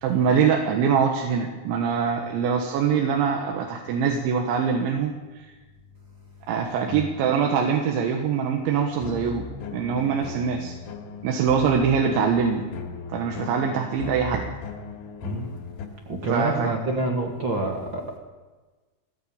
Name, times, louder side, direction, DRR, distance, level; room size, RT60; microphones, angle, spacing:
voice 1, 0.0-5.1 6.5-9.4 9.7-10.8 11.2-12.6 13.1-14.5 16.3-16.7, right 6 dB, 80° right, 2 dB, 3.7 m, -23 dB
sound 1, 9.0-15.9, left 4 dB, 80° left, 4.2 m, -37 dB
voice 2, 16.0-18.2, right 2 dB, 45° right, 2 dB, 1.6 m, -27 dB
19.0 x 16.5 x 8.7 m, 1.3 s
omnidirectional pair, 5.4 m